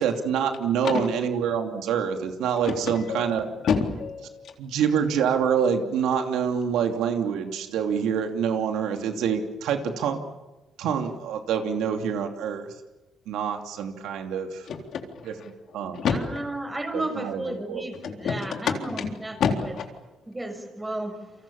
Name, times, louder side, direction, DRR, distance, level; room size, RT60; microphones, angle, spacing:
voice 1, 0.0-3.5 4.6-10.2 10.8-12.7 13.3-14.7 15.3-15.4 15.7-16.0 16.9-17.9, right 7 dB, 90° right, 5 dB, 2.8 m, -26 dB
voice 2, 2.6-4.5 14.7-16.2 18.0-19.9, left 6 dB, 70° left, 3 dB, 3.8 m, -29 dB
voice 3, 16.1-19.4 20.3-21.2, right 1 dB, 15° right, 6 dB, 6.1 m, -33 dB
29.0 x 24.5 x 7.1 m, 1.1 s
cardioid pair, 90°, 0 cm